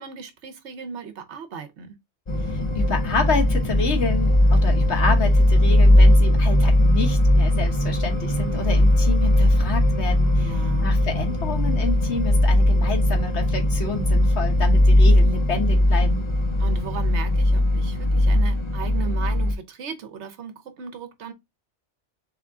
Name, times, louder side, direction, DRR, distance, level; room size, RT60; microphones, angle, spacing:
voice 1, 0.0-1.9 10.4-11.0 16.6-21.3, right 6 dB, 70° right, 1.1 m, -36 dB
sound 1, 2.3-19.5, left 1 dB, 35° left, 0.5 m, -19 dB
voice 2, 2.4-16.2, left 3 dB, 70° left, 1.5 m, -29 dB
3.6 x 3.5 x 3.6 m
omnidirectional pair, 1.2 m